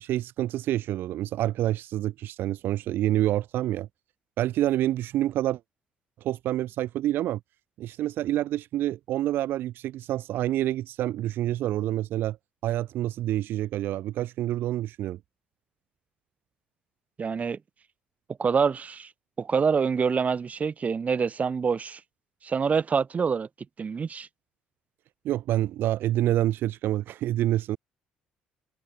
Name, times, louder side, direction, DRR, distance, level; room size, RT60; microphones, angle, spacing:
voice 1, 0.0-3.9 4.4-5.6 6.2-7.4 7.8-12.4 12.6-15.2 25.2-27.8, right 13 dB, 60° right, 2.4 m, -27 dB
voice 2, 17.2-17.6 18.4-19.1 19.4-22.0 22.4-23.5 23.8-24.3, right 6 dB, 35° right, 5.6 m, -26 dB
hypercardioid pair, 55°, 4 cm